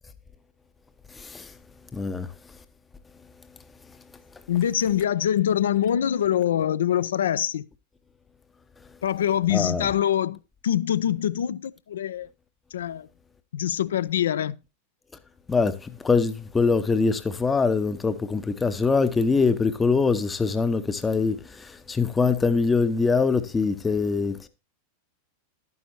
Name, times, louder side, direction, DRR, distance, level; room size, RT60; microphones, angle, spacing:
voice 1, 1.2-1.5 1.9-2.3 9.5-9.9 15.5-24.5, left 4 dB, 15° left, 0.7 m, -23 dB
voice 2, 4.5-7.6 9.0-10.4 10.6-12.3 12.7-13.1 13.5-14.5, left 10 dB, 65° left, 0.5 m, -24 dB
12.0 x 9.6 x 3.0 m
figure-of-eight pair, 90°, 0 cm